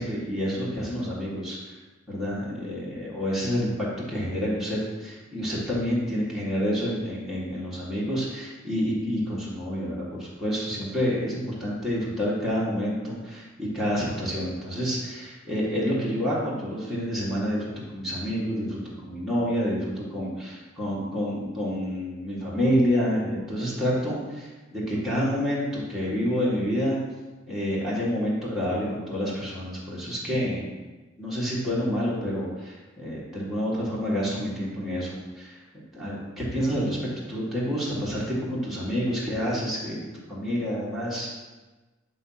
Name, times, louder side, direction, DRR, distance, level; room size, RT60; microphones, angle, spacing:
voice 1, 0.0-1.6 2.1-27.0 27.5-30.6 31.2-35.6 35.9-40.0 40.3-41.3, equal, ahead, -8 dB, 1.8 m, -28 dB
9.1 x 3.7 x 5.7 m, 1.2 s
head